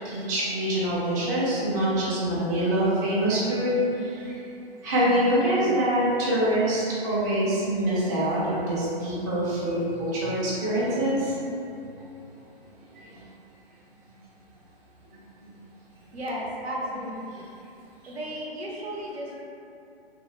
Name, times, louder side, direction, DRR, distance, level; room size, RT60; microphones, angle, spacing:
voice 1, 0.0-4.4 4.8-11.4 12.9-13.2 15.4-15.5, right 1 dB, 20° right, -9 dB, 0.4 m, -25 dB
voice 2, 16.1-17.5 18.1-19.4, equal, 80° right, -4 dB, 0.7 m, -34 dB
2.4 x 2.0 x 3.0 m, 2.7 s
figure-of-eight pair, 125°, 31 cm